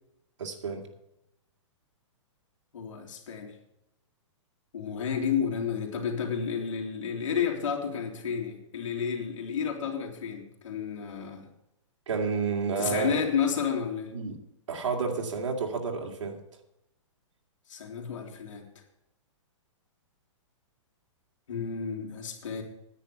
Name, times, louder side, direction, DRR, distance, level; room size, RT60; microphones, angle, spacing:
voice 1, 0.4-0.9 12.1-13.2 14.1-14.4 14.7-16.4, right 5 dB, 70° right, 3 dB, 2.5 m, -30 dB
voice 2, 2.7-3.6 4.7-11.5 12.8-14.1 17.7-18.7 21.5-22.6, left 7 dB, 75° left, 0 dB, 3.3 m, -31 dB
10.0 x 9.6 x 6.9 m, 0.84 s
hypercardioid pair, 175°, 16 cm